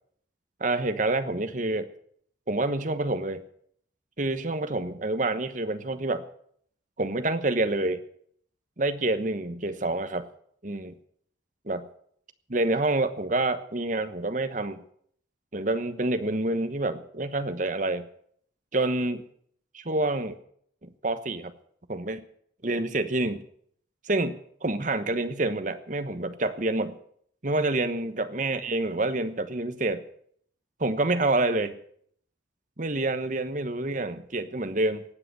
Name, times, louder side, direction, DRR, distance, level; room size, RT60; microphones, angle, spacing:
voice 1, 0.6-1.9 2.5-3.4 4.2-6.2 7.0-8.0 8.8-10.3 10.6-10.9 11.7-11.8 12.5-14.8 15.5-18.1 18.7-19.2 19.7-20.4 20.8-21.5 21.9-22.2 22.6-23.4 24.0-24.4 24.6-26.9 27.4-30.0 30.8-31.8 32.8-35.0, right 2 dB, 40° right, 10 dB, 1.1 m, -27 dB
18.0 x 7.9 x 8.2 m, 0.65 s
head